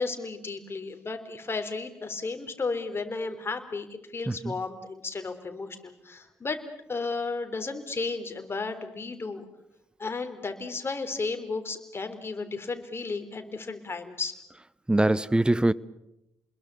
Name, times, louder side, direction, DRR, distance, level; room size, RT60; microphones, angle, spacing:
voice 1, 0.0-6.6 6.9-9.4 10.0-14.4, left 4 dB, 35° left, 3.6 m, -33 dB
voice 2, 14.9-15.7, right 2 dB, 15° right, 0.9 m, -23 dB
28.5 x 21.5 x 6.9 m
hypercardioid pair, 45°, 7 cm